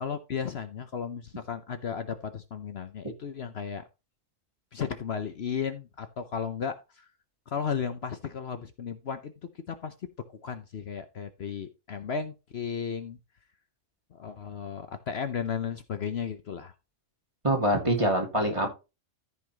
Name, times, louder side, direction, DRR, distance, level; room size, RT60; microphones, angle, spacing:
voice 1, 0.0-3.8 4.7-7.0 7.5-9.3 9.7-9.9 10.4-13.2 14.1-16.7, left 7 dB, 55° left, 9 dB, 1.1 m, -34 dB
voice 2, 17.4-18.7, right 1 dB, 25° right, 1 dB, 2.7 m, -24 dB
14.0 x 5.8 x 3.0 m, 0.27 s
omnidirectional pair, 1.3 m